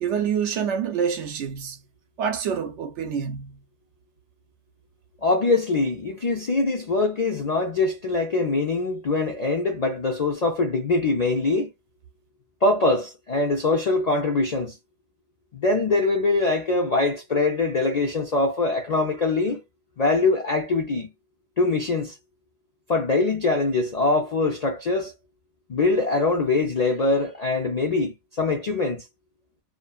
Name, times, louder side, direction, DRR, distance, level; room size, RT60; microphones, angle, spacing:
voice 1, 0.0-1.8 2.2-3.6, right 7 dB, 65° right, 0.8 m, -27 dB
voice 2, 5.2-11.7 12.6-14.8 15.5-19.6 20.0-21.1 21.6-22.1 22.9-25.1 25.7-29.1, left 3 dB, 75° left, 0.3 m, -23 dB
2.6 x 2.1 x 2.3 m
omnidirectional pair, 1.4 m